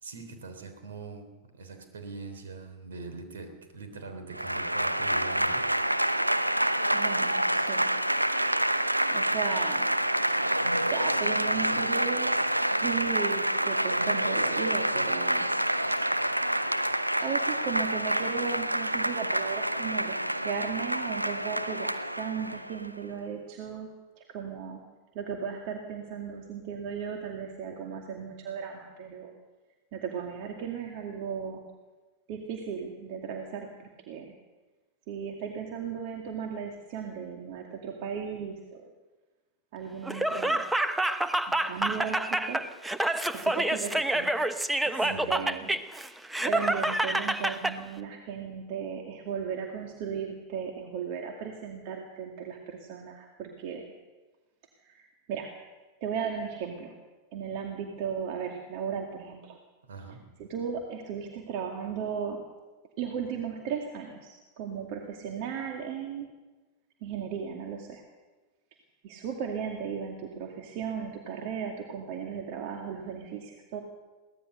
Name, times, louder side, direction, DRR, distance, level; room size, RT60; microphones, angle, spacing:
voice 1, 0.0-1.3 1.5-5.7 44.9-45.4 59.8-60.2, right 3 dB, 65° right, 8 dB, 3.7 m, -42 dB
Applause / Crowd, 4.3-22.9, right 1 dB, 85° right, 0.8 m, -27 dB
voice 2, 6.9-7.9 8.8-9.9 10.9-12.3 12.8-15.5 17.2-23.9 24.2-24.8 25.1-29.3 29.9-31.6 32.3-34.3 35.1-38.9 39.7-40.6 41.5-42.6 43.3-44.4 44.9-45.7 46.4-53.9 54.8-55.5 56.0-56.9 57.3-59.6 60.4-62.4 63.0-66.3 67.0-68.0 69.0-73.8, right 7 dB, 45° right, 2 dB, 2.3 m, -36 dB
Laughter, 40.1-47.8, right 1 dB, 5° right, 1.1 m, -28 dB
22.5 x 17.5 x 6.6 m, 1.2 s
figure-of-eight pair, 90°, 0 cm